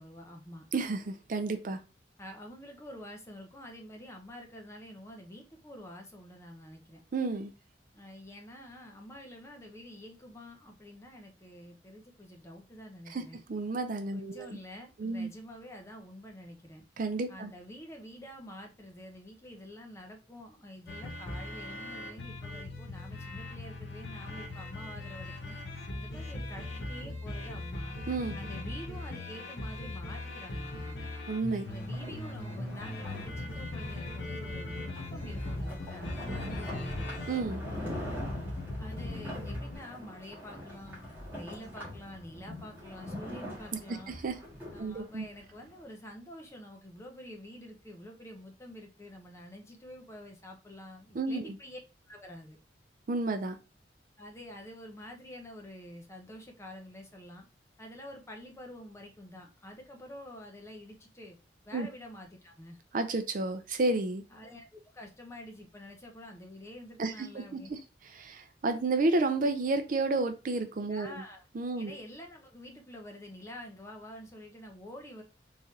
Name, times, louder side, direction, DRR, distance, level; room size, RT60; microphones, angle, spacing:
voice 1, 0.0-0.7 2.2-7.0 7.9-13.4 14.1-16.8 17.3-25.6 25.9-28.0 28.3-31.0 31.7-37.1 38.8-41.0 41.3-44.2 44.7-51.8 52.1-52.6 54.2-57.5 57.8-61.4 61.6-62.8 64.3-67.7 70.9-71.4 71.8-75.2, left 1 dB, 15° left, 0.7 m, -48 dB
voice 2, 0.7-1.8 7.1-7.5 13.1-13.2 13.5-14.6 15.0-15.3 17.0-17.5 28.1-28.3 31.3-31.7 37.3-37.6 44.1-44.3 44.8-45.2 51.1-51.5 53.1-53.6 61.7-61.9 62.9-64.2 67.0-67.8 68.2-71.2 71.5-71.9, right 3 dB, 50° right, 0.4 m, -31 dB
sound 1, 20.9-39.8, left 1 dB, 85° left, 0.9 m, -39 dB
sound 2, 31.6-45.8, left 1 dB, 10° right, 1.5 m, -44 dB
3.6 x 3.3 x 2.7 m
head